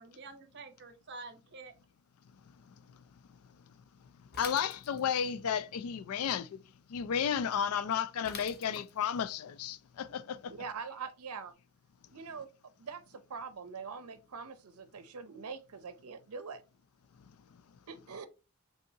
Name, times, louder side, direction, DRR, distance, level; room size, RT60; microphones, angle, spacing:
voice 1, 0.0-1.7, right 3 dB, 50° right, 0.9 m, -48 dB
voice 2, 2.7-3.0 4.4-6.6 6.9-10.5, left 8 dB, 85° left, 0.4 m, -33 dB
Bicycle / Mechanisms, 4.3-5.3 8.2-9.2, left 6 dB, 45° left, 0.8 m, -46 dB
voice 3, 10.5-11.5 12.1-12.5 12.8-16.6 17.9-18.3, right 5 dB, 90° right, 0.6 m, -43 dB
5.3 x 3.6 x 2.7 m
head